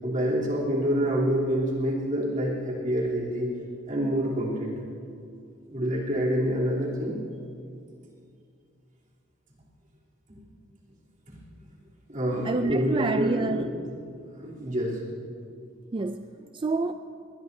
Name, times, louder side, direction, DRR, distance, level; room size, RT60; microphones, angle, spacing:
voice 1, 0.0-3.5 3.9-4.7 5.7-7.2 11.3-11.4 12.1-13.8 14.4-15.0, equal, 40° right, -5 dB, 3.2 m, -27 dB
voice 2, 12.4-13.7 15.9-16.9, right 3 dB, 25° right, 8 dB, 0.3 m, -28 dB
21.0 x 21.0 x 2.7 m, 2.4 s
head